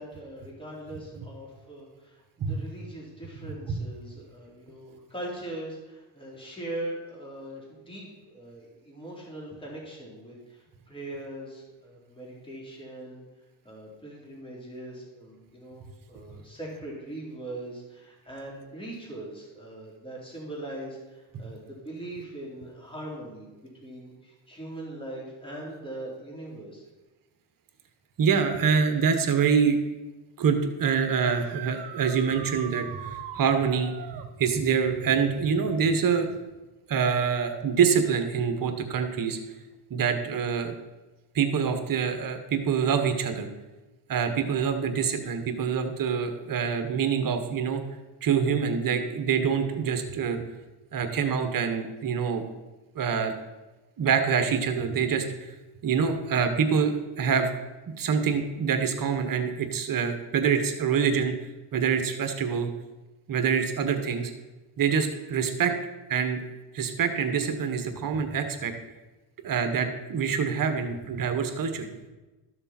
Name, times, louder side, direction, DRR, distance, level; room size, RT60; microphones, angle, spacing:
voice 1, 0.0-13.2 13.6-23.5 23.8-26.8, right 1 dB, 10° left, -3 dB, 3.5 m, -41 dB
voice 2, 28.2-29.8 30.4-36.3 36.9-39.4 39.9-40.7 41.3-43.5 44.1-47.8 48.2-50.4 50.9-52.4 52.9-53.3 54.0-55.5 55.8-57.5 58.0-61.3 61.7-62.7 63.3-64.3 64.8-65.7 66.1-66.4 66.7-68.7 69.4-71.9, right 6 dB, 45° right, 7 dB, 1.4 m, -25 dB
sound 1, 31.3-34.3 37.6-37.7 39.7-39.8 46.1-46.2, right 8 dB, 65° right, 1.1 m, -41 dB
13.5 x 6.8 x 4.4 m, 1.1 s
cardioid pair, 95°, 45 cm